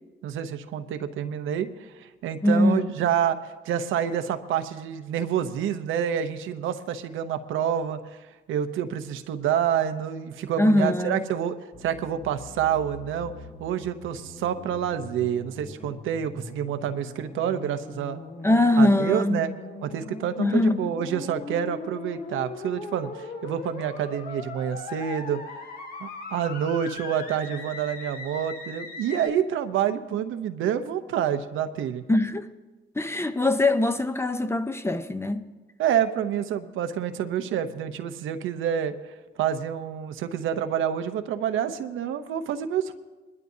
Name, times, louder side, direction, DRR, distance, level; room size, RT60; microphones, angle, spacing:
voice 1, 0.2-8.0 8.5-13.3 13.6-18.2 18.8-19.5 19.8-25.4 26.0-32.0 35.8-38.9 39.4-42.9, right 9 dB, 85° right, 0.8 m, -28 dB
voice 2, 2.4-2.9 10.6-11.2 18.4-19.4 20.4-20.8 32.1-32.5 32.9-35.5, left 1 dB, 10° left, 0.7 m, -22 dB
sound 1, 11.7-29.3, left 3 dB, 50° left, 2.0 m, -40 dB
21.5 x 12.0 x 2.8 m
cardioid pair, 90°, 20 cm